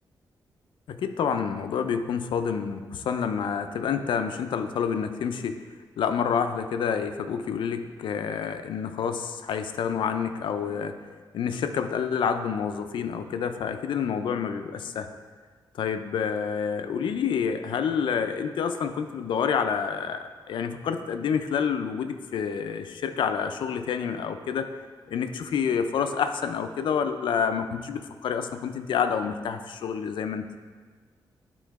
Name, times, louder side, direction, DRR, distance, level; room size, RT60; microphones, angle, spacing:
voice 1, 0.9-5.6 6.0-11.0 11.3-15.1 15.7-24.7 25.1-30.4, left 7 dB, 90° left, 8 dB, 0.5 m, -28 dB
10.0 x 3.8 x 4.7 m, 1.5 s
wide cardioid pair, 150°, 8 cm